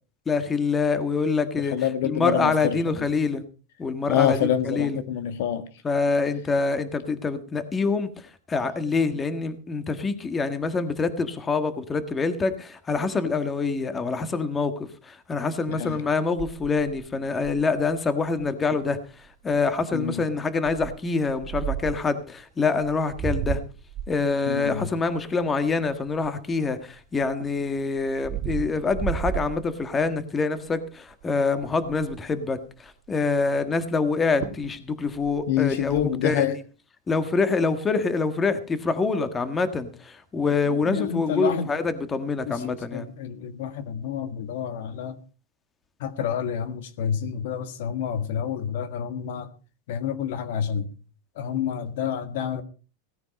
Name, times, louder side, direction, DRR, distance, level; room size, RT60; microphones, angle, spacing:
voice 1, 0.2-3.4 3.8-5.0 5.8-23.6 24.1-36.6 37.1-43.1, left 4 dB, 15° left, 11 dB, 1.5 m, -26 dB
voice 2, 1.7-2.7 4.1-5.7 15.8-16.0 19.9-20.2 24.5-24.9 35.5-36.5 40.4-40.5 40.9-41.7 42.5-45.2 46.0-49.5 49.9-50.9 51.4-52.6, left 9 dB, 70° left, 12 dB, 1.6 m, -27 dB
sound 1, 16.4-17.8 18.4-18.5 18.7-19.0 19.5-19.8 20.6-22.1 22.8-26.7 27.2-30.2 30.7-30.9 31.2-31.3 31.6-32.3 34.0-34.1 34.4-34.8 35.1-36.0, right 9 dB, 40° right, 1.7 m, -33 dB
17.0 x 9.4 x 5.3 m, 0.36 s
supercardioid pair, 135°, 0 cm